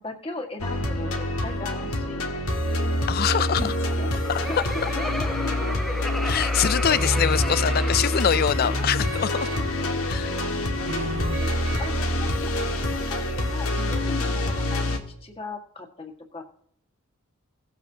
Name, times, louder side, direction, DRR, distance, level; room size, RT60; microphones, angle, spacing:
voice 1, 0.0-2.3 3.5-4.1 4.5-5.5 7.0-7.5 8.1-8.2 8.6-8.9 9.8-10.0 10.3-10.4 10.8-16.4, left 3 dB, 25° left, 1.7 m, -38 dB
sound 1, 0.6-15.0, left 1 dB, 85° left, 1.7 m, -26 dB
voice 2, 3.1-3.7 4.3-4.4 6.2-9.5 10.1-10.4 13.8-14.0, left 9 dB, 45° left, 0.4 m, -24 dB
Laughter, 4.0-9.2, equal, ahead, 0.7 m, -34 dB
sound 2, 7.9-9.8 10.4-12.1 12.7-12.9, right 2 dB, 90° right, 3.2 m, -39 dB
18.0 x 8.3 x 2.8 m
head